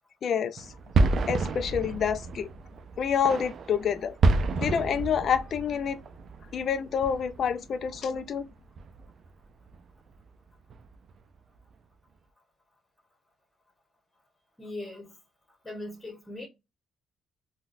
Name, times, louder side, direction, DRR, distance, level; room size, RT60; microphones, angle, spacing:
voice 1, 0.2-0.7 1.3-2.5 3.0-4.2 4.6-6.0 6.5-8.5, left 7 dB, 60° left, 0.4 m, -28 dB
sound 1, 0.6-8.5 8.8-9.3 9.7-9.8 10.1-10.2 10.7-11.1, right 3 dB, 60° right, 0.4 m, -30 dB
voice 2, 14.6-15.1 15.6-16.5, left 1 dB, 10° left, 1.2 m, -39 dB
3.7 x 2.3 x 2.5 m
cardioid pair, 90°, 0 cm